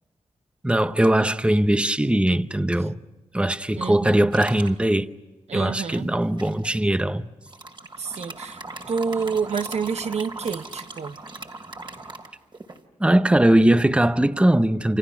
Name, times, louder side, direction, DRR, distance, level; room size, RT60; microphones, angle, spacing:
voice 1, 0.6-3.0 3.3-5.1 5.5-7.3 13.0-15.0, right 1 dB, 10° right, 0.8 m, -20 dB
voice 2, 3.7-4.3 5.5-6.1 8.0-11.2, right 5 dB, 65° right, 0.9 m, -29 dB
sound 1, 4.3-4.8 5.9-6.7 7.5-12.8, right 2 dB, 40° right, 2.8 m, -39 dB
29.0 x 28.5 x 6.0 m
cardioid pair, 65°, 12 cm